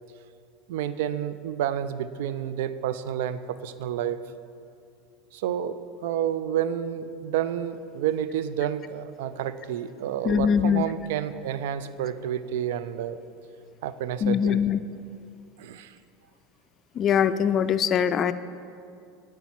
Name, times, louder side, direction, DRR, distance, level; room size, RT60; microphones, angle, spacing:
voice 1, 0.7-4.2 5.3-13.2 13.8-14.6 15.6-16.0, right 10 dB, 70° right, 13 dB, 0.4 m, -30 dB
voice 2, 10.2-10.8 14.2-14.8 17.0-18.3, left 8 dB, 40° left, 13 dB, 0.4 m, -22 dB
8.9 x 4.8 x 6.0 m, 2.5 s
hypercardioid pair, 80°, 0 cm